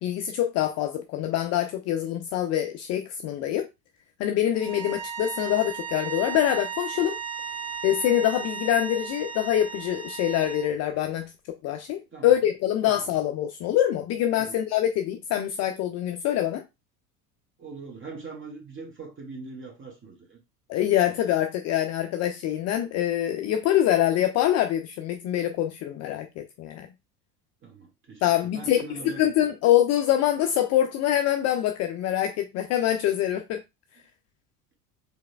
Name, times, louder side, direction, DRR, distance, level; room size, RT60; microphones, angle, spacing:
voice 1, 0.0-3.7 4.2-7.2 7.8-11.3 11.6-16.6 20.7-26.9 28.2-33.6, left 11 dB, 35° left, 0.4 m, -25 dB
sound 1, 4.6-10.7, right 7 dB, 5° right, 2.0 m, -35 dB
voice 2, 17.6-20.4 27.6-29.5, right 4 dB, 25° right, 1.7 m, -42 dB
4.7 x 3.3 x 2.2 m
hypercardioid pair, 75°, 48 cm